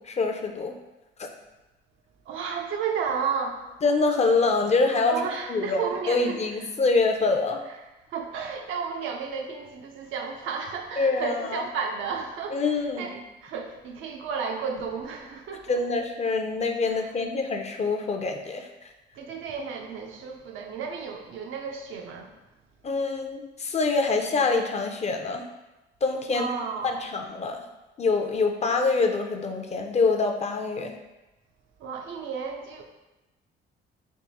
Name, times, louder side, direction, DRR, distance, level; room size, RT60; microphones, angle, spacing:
voice 1, 0.0-0.7 1.2-1.3 3.8-5.2 5.5-5.8 6.1-7.6 11.0-11.6 12.5-13.1 15.7-18.9 22.8-25.5 26.0-26.5 26.8-27.6 28.0-30.9, left 3 dB, 35° left, 4 dB, 0.5 m, -25 dB
voice 2, 2.3-3.7 5.0-6.7 7.7-7.8 8.1-15.8 16.9-17.1 19.1-22.3 26.3-27.0 31.8-32.8, right 6 dB, 80° right, 2 dB, 0.6 m, -33 dB
3.6 x 2.3 x 4.0 m, 1.0 s
cardioid pair, 90°, 20 cm